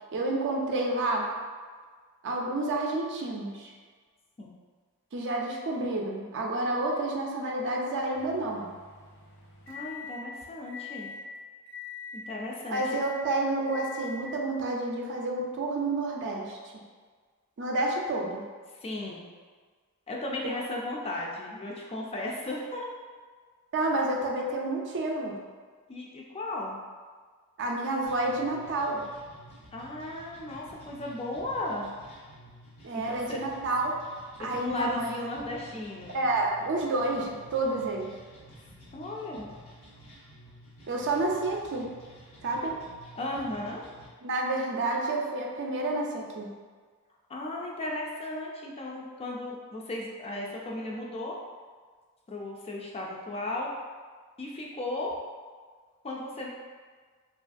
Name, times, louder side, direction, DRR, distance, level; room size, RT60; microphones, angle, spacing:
voice 1, 0.1-1.3 2.2-3.7 5.1-8.7 12.7-16.6 17.6-18.4 20.4-20.6 23.7-25.4 27.6-29.0 32.8-33.9 34.4-35.2 36.1-38.1 40.9-41.9 42.4-42.8 44.2-46.5, right 2 dB, 55° right, -1 dB, 0.4 m, -29 dB
sound 1, 8.1-10.2 10.7-11.2 11.7-12.2 12.7-13.2 13.7-14.2, left 7 dB, 60° left, 0.6 m, -43 dB
voice 2, 9.7-11.1 12.1-13.1 18.7-19.3 20.1-22.9 25.9-26.8 29.7-31.9 32.9-33.4 34.6-36.2 38.9-39.5 43.1-43.9 47.3-51.4 52.3-53.7 54.4-55.1 56.0-56.5, left 1 dB, 25° left, -2 dB, 0.3 m, -35 dB
sound 2, 28.1-44.1, equal, 80° left, 1.0 m, -52 dB
2.9 x 2.4 x 2.5 m, 1.5 s
head